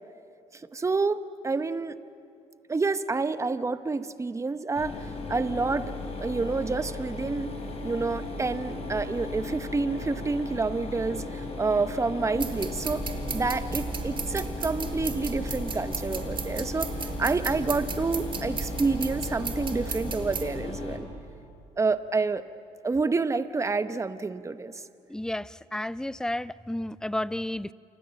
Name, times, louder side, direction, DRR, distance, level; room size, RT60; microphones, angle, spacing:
voice 1, 0.5-2.0 2.7-5.9 6.2-7.5 7.8-13.1 13.3-16.9 17.2-21.1 21.8-22.4 22.8-24.8, right 4 dB, 25° right, 12 dB, 1.0 m, -28 dB
Mechanisms, 4.8-21.0, left 3 dB, 50° left, 5.3 m, -36 dB
sound 1, 8.7-10.8 11.1-12.1 12.3-12.4 13.3-14.1, right 4 dB, 60° right, 2.8 m, -49 dB
sound 2, 12.4-20.5, right 5 dB, 40° right, 2.7 m, -35 dB
voice 2, 25.1-27.7, left 1 dB, 5° left, 18 dB, 0.6 m, -32 dB
28.5 x 25.0 x 7.6 m, 2.6 s
supercardioid pair, 75°, 13 cm